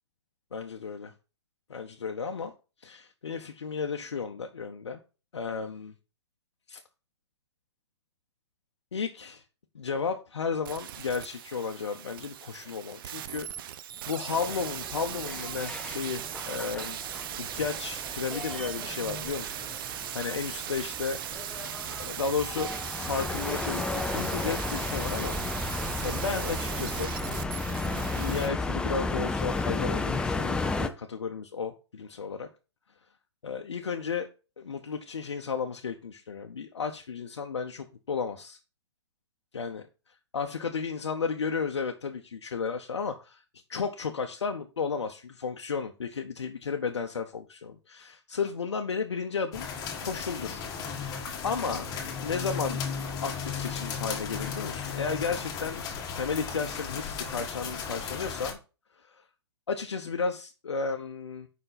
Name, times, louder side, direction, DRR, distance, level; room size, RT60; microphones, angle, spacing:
voice 1, 0.5-1.1 1.7-2.5 2.8-5.0 5.3-5.9 6.7-6.8 8.9-9.4 9.7-13.5 14.1-17.0 17.4-19.6 20.1-21.2 22.0-27.2 27.7-32.5 33.4-34.3 34.6-38.6 39.5-39.9 40.3-43.4 43.7-49.7 50.0-50.7 51.0-51.9 52.2-52.8 53.2-58.6 59.0-59.1 59.7-61.5, left 5 dB, 80° left, 4 dB, 0.7 m, -33 dB
sound 1, 10.7-28.5 28.8-28.9, right 10 dB, 50° right, 0.6 m, -38 dB
sound 2, 14.3-30.9, left 3 dB, 5° left, 0.4 m, -34 dB
sound 3, 49.5-58.5, left 6 dB, 25° left, 1.5 m, -35 dB
5.4 x 5.1 x 4.0 m, 0.33 s
hypercardioid pair, 120°, 14 cm